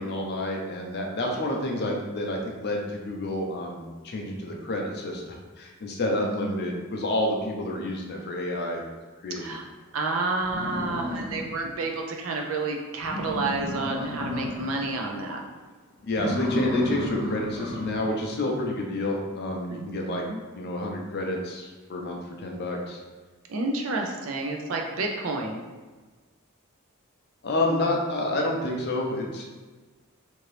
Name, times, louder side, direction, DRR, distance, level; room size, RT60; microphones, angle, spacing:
voice 1, 0.0-8.8 9.2-9.6 16.0-20.2 20.6-23.0 27.4-29.5, left 1 dB, 50° left, 0 dB, 0.5 m, -29 dB
voice 2, 6.1-6.8 9.4-9.6 9.9-15.4 19.7-20.4 23.5-25.6, right 3 dB, 65° right, 1 dB, 0.5 m, -30 dB
sound 1, 9.9-10.0 10.4-11.8 12.2-12.3 12.7-12.8 13.0-14.9 15.2-15.6 16.1-18.1, left 1 dB, 25° right, 0.7 m, -32 dB
2.8 x 2.6 x 3.2 m, 1.3 s
head